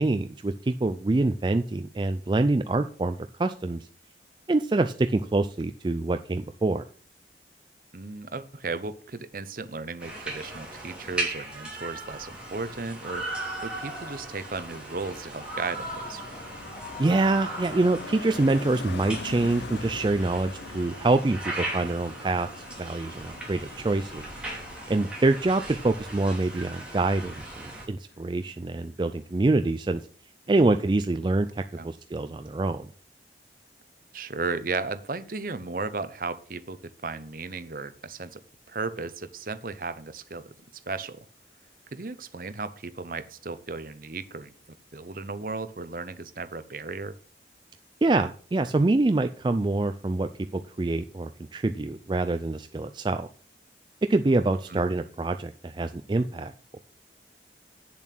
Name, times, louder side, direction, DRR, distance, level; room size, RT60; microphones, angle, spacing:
voice 1, 0.0-3.9 4.5-6.8 17.0-22.5 22.8-24.3 24.9-30.0 30.5-32.9 48.0-53.3 54.1-56.8, right 2 dB, 25° right, 8 dB, 0.4 m, -25 dB
voice 2, 7.9-13.2 13.6-16.2 30.5-31.0 31.8-31.9 34.1-38.4 38.7-40.5 40.9-41.2 41.9-44.5 44.9-47.2 54.7-54.8, right 3 dB, 50° right, 13 dB, 0.8 m, -35 dB
sound 1, 10.0-27.8, right 1 dB, 5° right, 3.0 m, -38 dB
Car passing by, 13.5-27.8 28.1-28.4, left 4 dB, 80° left, 0.7 m, -44 dB
8.4 x 7.2 x 6.0 m, 0.42 s
head